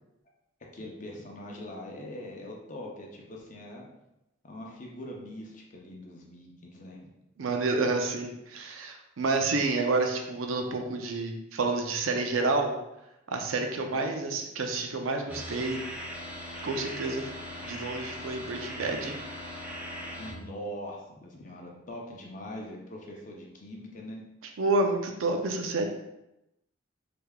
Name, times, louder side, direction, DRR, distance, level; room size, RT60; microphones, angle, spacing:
voice 1, 0.7-3.9 4.4-7.0 20.2-24.2, left 1 dB, 40° left, -1 dB, 0.6 m, -42 dB
voice 2, 7.4-12.7 13.3-15.8 16.6-17.3 17.6-19.2 24.6-25.8, right 3 dB, 90° right, 4 dB, 0.5 m, -29 dB
sound 1, 15.3-20.3, equal, 10° right, 0.4 m, -39 dB
3.4 x 3.3 x 2.3 m, 0.89 s
head